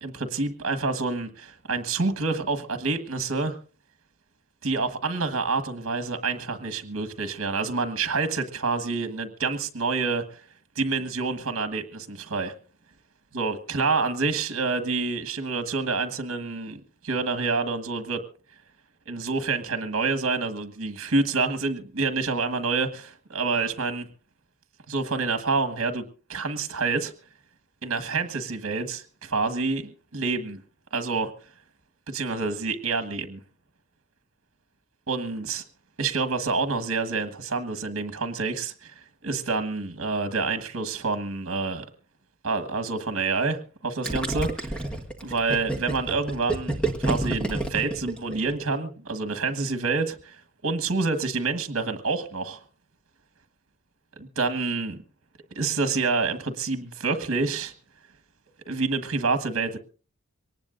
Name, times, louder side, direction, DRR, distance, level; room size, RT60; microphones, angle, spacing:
voice 1, 0.0-3.6 4.6-10.4 10.7-12.5 13.3-18.2 19.1-24.1 24.9-26.0 26.3-27.1 27.8-30.6 30.9-31.3 32.1-33.4 35.1-35.6 36.0-41.8 42.4-44.9 45.2-50.4 50.6-52.6 54.2-55.0 55.5-57.7 58.7-59.8, right 4 dB, 65° right, 10 dB, 1.4 m, -28 dB
Gurgling, 44.0-48.7, right 2 dB, 5° left, 1.4 m, -29 dB
23.0 x 19.0 x 2.6 m, 0.38 s
head